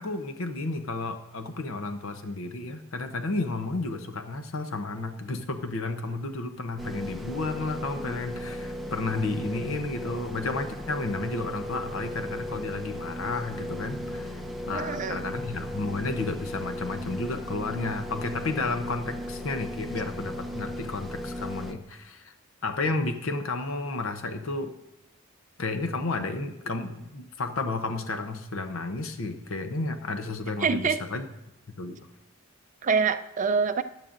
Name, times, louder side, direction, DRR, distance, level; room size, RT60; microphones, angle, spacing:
voice 1, 0.0-22.3 22.6-24.7 25.6-31.2 31.8-32.0, left 3 dB, 75° left, 8 dB, 0.8 m, -32 dB
sound 1, 6.8-21.7, equal, ahead, 0.7 m, -36 dB
voice 2, 14.7-15.2 30.6-31.0 32.8-33.8, right 5 dB, 40° right, 9 dB, 0.5 m, -25 dB
15.5 x 10.5 x 2.6 m, 0.91 s
head